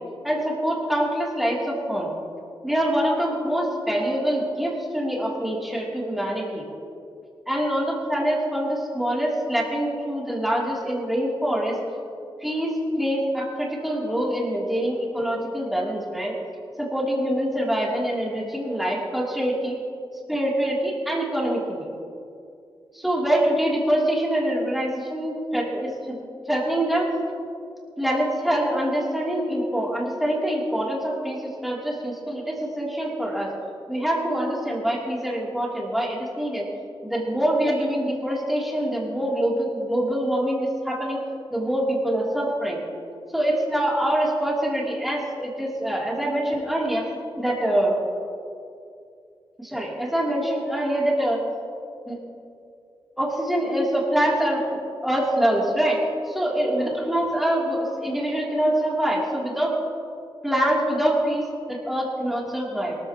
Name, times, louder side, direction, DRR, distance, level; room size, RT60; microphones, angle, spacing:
voice 1, 0.2-2.1 2.6-6.7 7.5-11.8 12.4-16.3 16.8-19.8 20.3-21.9 22.9-26.2 26.5-27.1 28.0-33.5 33.9-36.7 37.0-41.2 41.5-42.8 43.3-47.0 47.4-48.0 49.6-51.4 52.1-52.2 53.2-54.6 55.0-56.0 56.3-59.7 60.4-63.0, right 1 dB, ahead, -5 dB, 3.1 m, -25 dB
23.5 x 14.0 x 3.0 m, 2.5 s
wide cardioid pair, 165°, 9 cm